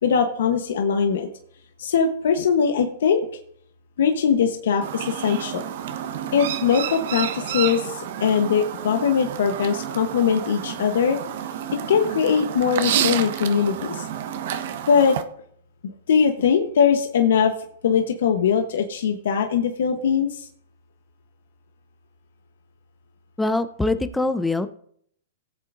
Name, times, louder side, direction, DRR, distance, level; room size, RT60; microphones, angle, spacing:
voice 1, 0.0-1.3 1.8-3.3 4.0-5.7 6.3-11.2 11.9-14.1 14.9-15.2 16.1-17.5 17.8-20.5, left 7 dB, 75° left, 5 dB, 1.0 m, -21 dB
Chirp tweet, 4.8-15.2, right 10 dB, 60° right, 0.9 m, -30 dB
voice 2, 23.4-24.7, left 2 dB, 5° left, 11 dB, 0.7 m, -23 dB
18.0 x 8.1 x 2.6 m, 0.64 s
hypercardioid pair, 130°, 0 cm